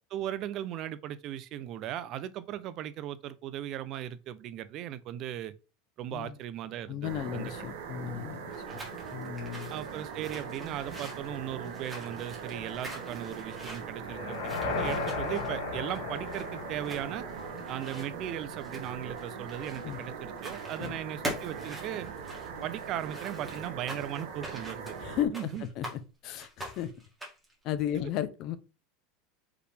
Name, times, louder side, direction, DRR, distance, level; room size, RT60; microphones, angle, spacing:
voice 1, 0.0-5.5 6.0-7.5 8.7-8.8 9.7-17.3 17.7-22.1 22.6-25.0 25.3-25.6, right 11 dB, 35° right, 0.4 m, -37 dB
voice 2, 6.9-8.8 9.1-9.7 19.8-20.0 20.8-20.9 25.0-26.9 27.6-28.6, left 10 dB, 40° left, 0.5 m, -35 dB
sound 1, 7.0-25.3, right 6 dB, 90° right, 1.3 m, -41 dB
sound 2, 8.5-20.1 20.4-20.9 21.2-26.0 26.4-27.5, right 1 dB, 5° right, 1.6 m, -44 dB
sound 3, 14.0-18.1, left 4 dB, 80° left, 1.3 m, -35 dB
4.8 x 3.2 x 3.3 m
supercardioid pair, 165°, 0 cm